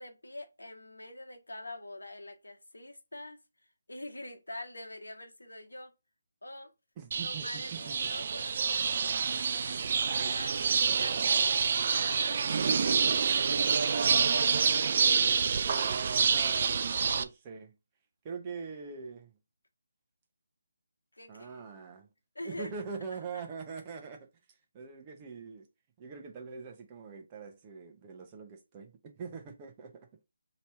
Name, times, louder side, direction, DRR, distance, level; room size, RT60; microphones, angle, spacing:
voice 1, 0.0-3.4 3.9-5.9 6.4-6.7 7.2-11.4 11.7-14.1 21.1-21.5 22.3-22.8 23.3-23.4, left 1 dB, 85° left, 1.1 m, -45 dB
voice 2, 7.0-7.9 15.2-17.7 18.2-19.3 21.3-22.1 22.4-24.3 24.7-25.7 26.0-30.2, right 5 dB, 25° right, 0.8 m, -43 dB
sound 1, 7.1-17.2, right 6 dB, 45° right, 0.3 m, -27 dB
3.0 x 2.9 x 4.5 m
figure-of-eight pair, 155°, 0 cm